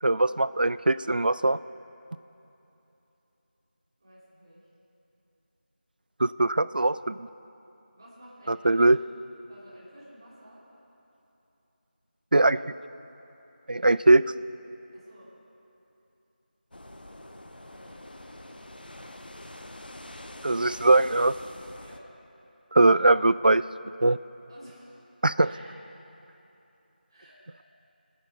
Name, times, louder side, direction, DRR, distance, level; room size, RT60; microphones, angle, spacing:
voice 1, 0.0-1.6 6.2-7.3 8.5-9.0 12.3-12.7 13.7-14.2 20.4-21.3 22.7-23.6 24.0-24.2 25.2-25.5, right 2 dB, 60° right, 16 dB, 0.4 m, -21 dB
voice 2, 4.0-4.7 7.9-8.9 9.5-10.6 14.9-15.3 17.6-18.4 21.8-22.1 24.5-25.1 25.4-25.7 27.1-27.6, equal, 25° right, -8 dB, 3.4 m, -52 dB
sound 1, 16.7-22.0, left 1 dB, 65° left, 1.1 m, -45 dB
24.5 x 10.0 x 3.9 m, 3.0 s
figure-of-eight pair, 175°, 6 cm